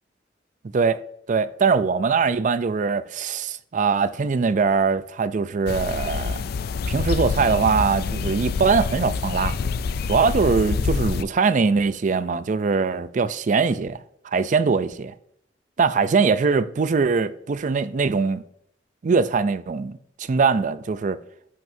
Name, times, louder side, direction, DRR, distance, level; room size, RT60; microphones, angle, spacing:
voice 1, 1.3-6.4 6.9-9.6 10.1-14.0 14.2-15.1 15.8-18.4 19.0-19.9 20.2-21.2, right 5 dB, 45° right, 0.4 m, -22 dB
sound 1, 5.7-11.2, left 5 dB, 55° left, 0.3 m, -26 dB
10.5 x 6.1 x 2.7 m
head